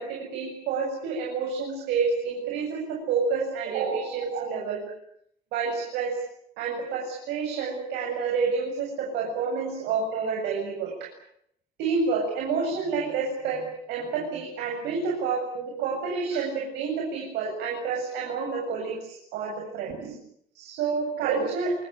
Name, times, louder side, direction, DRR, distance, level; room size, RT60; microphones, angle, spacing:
voice 1, 0.0-4.8 5.5-6.2 6.6-10.9 11.8-13.6 13.9-20.1 20.5-21.7, right 5 dB, 90° right, 0 dB, 8.0 m, -29 dB
27.5 x 20.5 x 9.0 m, 0.73 s
cardioid pair, 110°, 17 cm